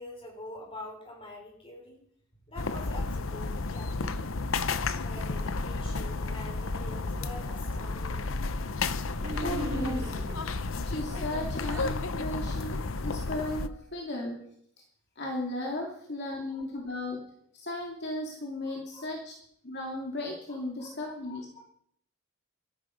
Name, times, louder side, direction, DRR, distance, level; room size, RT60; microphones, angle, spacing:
voice 1, 0.0-2.0 2.5-8.7 11.2-11.4 13.6-13.8 16.5-16.6 18.6-19.1 20.5-21.6, left 1 dB, 25° left, 1 dB, 5.4 m, -47 dB
sound 1, 2.6-13.7, left 3 dB, 70° left, 0.9 m, -32 dB
sound 2, 9.1-10.5 11.1-11.9, right 1 dB, 65° right, 4.8 m, -38 dB
voice 2, 9.4-10.2 10.8-14.4 15.2-17.2 17.5-19.3 19.6-21.5, left 1 dB, 55° left, 0 dB, 2.8 m, -35 dB
18.0 x 13.5 x 5.3 m, 0.69 s
head